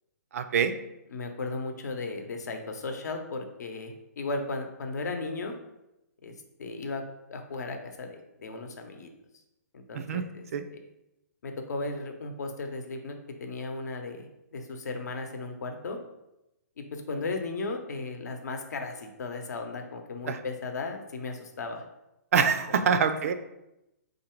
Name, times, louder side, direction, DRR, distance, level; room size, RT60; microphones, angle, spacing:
voice 1, 0.3-0.7 9.9-10.3 10.5-10.6 20.3-20.4 22.3-23.3, right 6 dB, 55° right, 9 dB, 0.4 m, -25 dB
voice 2, 1.1-5.5 6.2-7.0 7.3-9.1 9.7-10.4 10.7-10.8 11.4-16.0 16.8-21.8 22.7-23.0, left 3 dB, 75° left, 5 dB, 0.7 m, -36 dB
3.6 x 2.6 x 4.4 m, 0.90 s
hypercardioid pair, 155°, 9 cm